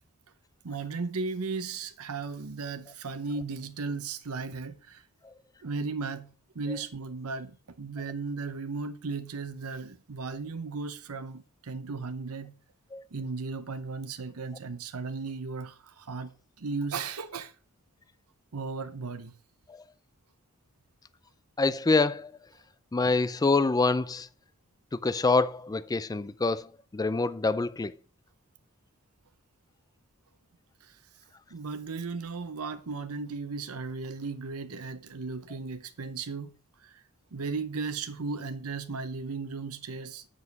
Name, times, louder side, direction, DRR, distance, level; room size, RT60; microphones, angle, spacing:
voice 1, 0.6-5.1 5.6-12.5 13.1-17.5 18.5-19.4 30.8-31.0 31.5-36.5 36.8-37.0 37.3-40.3, right 4 dB, 75° right, 0.8 m, -36 dB
voice 2, 21.6-22.3 22.9-24.3 24.9-28.0, left 3 dB, 15° left, 0.4 m, -26 dB
7.3 x 6.4 x 5.2 m
head